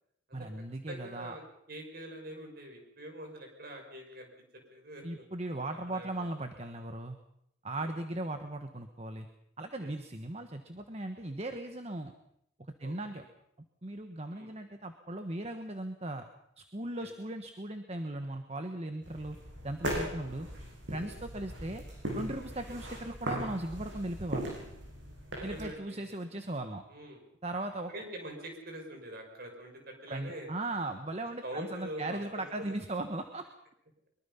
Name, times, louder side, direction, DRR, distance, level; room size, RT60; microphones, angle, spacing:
voice 1, 0.3-1.4 5.0-7.2 7.6-9.3 9.6-12.1 12.8-13.2 13.8-16.2 16.6-19.4 19.6-20.5 20.9-21.8 22.1-24.6 25.4-26.8 27.4-27.9 30.1-33.4, right 2 dB, 35° right, 7 dB, 1.3 m, -38 dB
voice 2, 0.9-1.4 1.7-4.3 4.7-5.3 5.8-6.3 7.7-7.9 9.8-9.9 12.8-13.3 14.3-14.5 17.0-17.1 22.6-22.8 25.3-26.1 26.9-27.2 27.9-30.5 31.4-32.7, right 1 dB, 50° right, 3 dB, 6.1 m, -44 dB
sound 1, 19.0-25.6, equal, 75° right, 7.8 m, -39 dB
23.5 x 23.0 x 5.7 m, 0.73 s
head